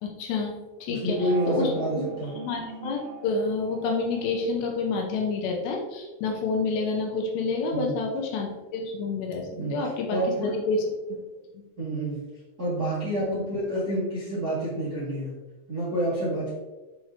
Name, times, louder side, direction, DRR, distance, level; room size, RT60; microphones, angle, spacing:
voice 1, 0.0-2.0 2.4-10.2 10.5-10.8 11.1-11.2 11.5-11.6 13.2-13.4, left 4 dB, 80° left, 1 dB, 2.6 m, -29 dB
voice 2, 0.9-2.3 7.7-7.9 9.6-9.7 10.1-10.5 11.8-12.2 12.6-15.3 15.7-16.5, right 1 dB, 50° right, -10 dB, 1.1 m, -28 dB
sound 1, 1.1-5.7, right 4 dB, 80° right, 2.1 m, -43 dB
7.6 x 4.5 x 2.8 m, 1.2 s
omnidirectional pair, 5.5 m